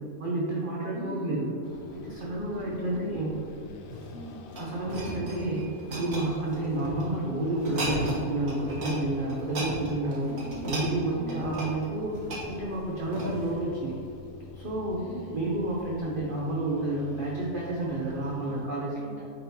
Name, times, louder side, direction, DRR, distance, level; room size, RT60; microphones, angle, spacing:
voice 1, 0.2-1.5 1.9-3.4 4.6-10.3 10.7-14.0 14.6-15.0 15.3-19.1, right 2 dB, 45° right, -4 dB, 0.8 m, -30 dB
voice 2, 0.9-1.6 2.5-3.2 4.1-4.4 10.3-10.6 11.1-11.5 15.0-15.4 18.4-19.2, equal, 20° right, -3 dB, 0.8 m, -43 dB
sound 1, 1.6-18.7, left 4 dB, 65° left, 0.7 m, -47 dB
sound 2, 3.9-7.0 7.5-8.2 8.5-9.0 9.3-13.6 14.1-14.3, right 1 dB, 65° right, 1.6 m, -35 dB
8.9 x 3.9 x 2.8 m, 2.6 s
omnidirectional pair, 1.5 m